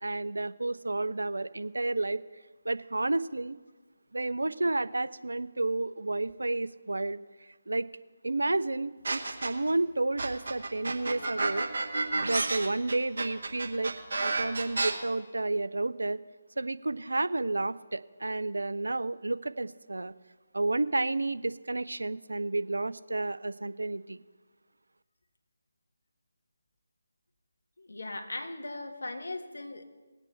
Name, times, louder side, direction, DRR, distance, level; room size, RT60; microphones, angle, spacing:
voice 1, 0.0-2.2 2.7-3.6 4.1-7.9 8.2-11.7 12.2-13.9 14.2-16.2 16.6-20.1 20.5-24.2, right 2 dB, 75° right, 15 dB, 0.4 m, -31 dB
sound 1, 9.0-9.7 10.2-14.9, right 3 dB, 60° right, 1.6 m, -30 dB
voice 2, 27.8-29.8, left 2 dB, 70° left, 6 dB, 1.5 m, -38 dB
20.5 x 8.3 x 3.3 m, 1.3 s
figure-of-eight pair, 150°, 0 cm